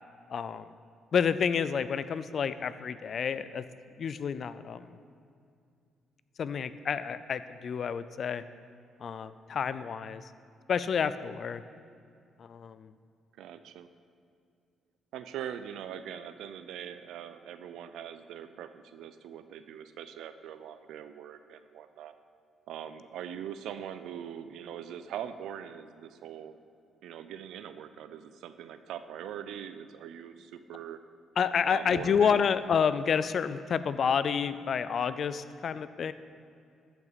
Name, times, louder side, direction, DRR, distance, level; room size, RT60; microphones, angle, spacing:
voice 1, 0.3-0.7 1.1-3.6 4.0-5.0 6.4-8.4 9.0-10.3 10.7-11.6 12.4-12.9 31.4-36.1, left 7 dB, 55° left, 14 dB, 0.4 m, -29 dB
voice 2, 13.4-13.9 15.1-22.2 22.7-26.5 27.0-31.0 31.7-32.5, right 9 dB, 85° right, 11 dB, 0.5 m, -42 dB
13.5 x 5.8 x 4.1 m, 2.4 s
cardioid pair, 90°, 0 cm